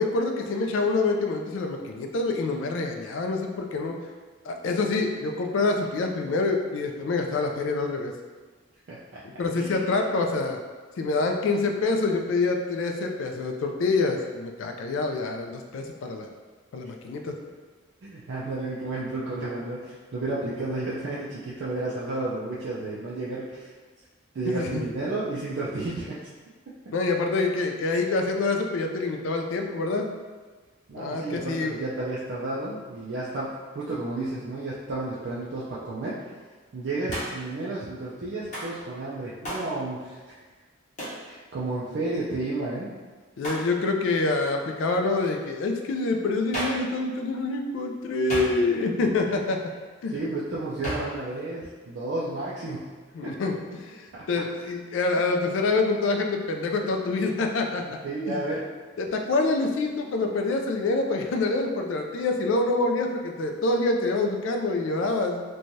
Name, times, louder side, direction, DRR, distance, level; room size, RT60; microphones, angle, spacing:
voice 1, 0.0-4.0 4.5-8.1 9.4-10.6 11.0-16.3 16.7-17.3 24.5-24.8 26.9-30.1 31.0-31.8 43.4-49.6 50.0-50.1 53.1-53.5 53.8-53.9 54.3-57.8 58.3-58.4 59.0-65.4, left 3 dB, 65° left, 3 dB, 0.3 m, -26 dB
voice 2, 8.9-9.2 9.6-9.8 18.0-23.7 24.3-26.2 26.7-26.8 30.9-36.2 36.7-40.2 41.2-42.9 50.1-53.0 53.2-53.4 54.1-54.3 58.0-58.7, right 2 dB, 55° right, -7 dB, 0.4 m, -32 dB
Hands, 37.1-37.5 38.5-38.8 39.4-39.7 41.0-41.2 43.4-43.7 46.5-46.9 48.3-48.9 50.8-51.2, equal, 35° left, 0.8 m, -33 dB
3.1 x 2.2 x 2.6 m, 1.4 s
head